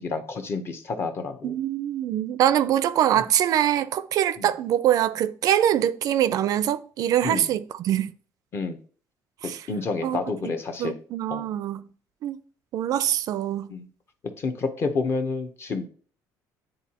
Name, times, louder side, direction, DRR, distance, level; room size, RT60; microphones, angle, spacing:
voice 1, 0.0-1.5 3.2-3.3 4.4-4.5 7.2-7.5 8.5-8.8 9.4-11.0 11.3-11.5 13.7-13.9 14.4-15.9, left 4 dB, 35° left, 0.8 m, -29 dB
voice 2, 1.4-8.1 9.4-9.6 10.0-10.5 10.8-11.9 12.2-12.4 12.7-13.7, right 11 dB, 55° right, 0.4 m, -24 dB
9.2 x 3.9 x 2.9 m
cardioid pair, 135°, 7 cm